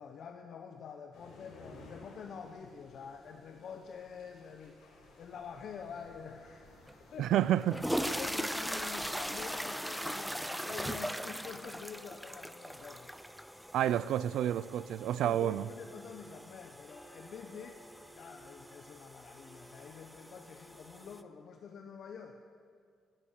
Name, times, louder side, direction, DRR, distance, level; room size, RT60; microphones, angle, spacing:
voice 1, 0.0-6.7 7.1-7.3 8.2-13.1 13.8-14.0 15.2-17.8 18.1-22.4, left 6 dB, 65° left, 0.8 m, -47 dB
sound 1, 1.1-8.2, left 2 dB, 85° left, 4.5 m, -56 dB
sound 2, 6.9-7.0 7.6-21.2, equal, ahead, 0.6 m, -40 dB
voice 2, 7.2-7.8 13.7-15.7, right 11 dB, 80° right, 0.4 m, -29 dB
sound 3, 15.0-21.4, right 1 dB, 25° left, 2.1 m, -59 dB
16.0 x 10.5 x 6.6 m
cardioid pair, 90°, 0 cm